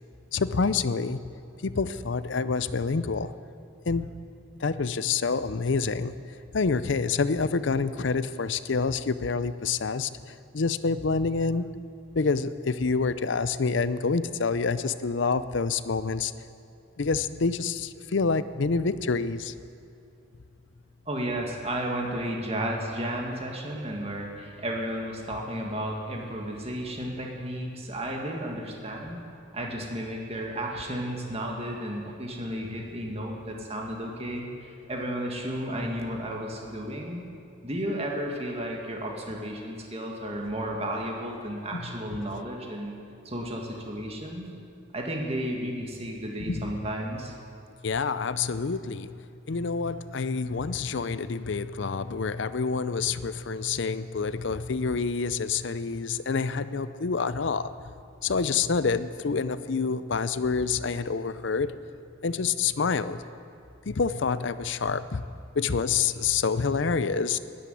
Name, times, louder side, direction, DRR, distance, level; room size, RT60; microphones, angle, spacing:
voice 1, 0.3-1.2 1.6-3.3 3.9-4.1 4.6-6.1 6.5-11.7 12.1-16.3 17.0-19.5 41.7-41.8 46.4-46.7 47.8-49.2 49.5-57.7 58.2-61.7 62.2-63.3 63.9-65.3 65.6-67.4, left 4 dB, 60° left, 14 dB, 0.6 m, -27 dB
voice 2, 21.1-29.2 29.5-37.2 37.6-42.9 43.2-44.5 44.9-47.3, right 1 dB, 30° right, 0 dB, 1.9 m, -33 dB
13.5 x 11.5 x 9.2 m, 2.5 s
head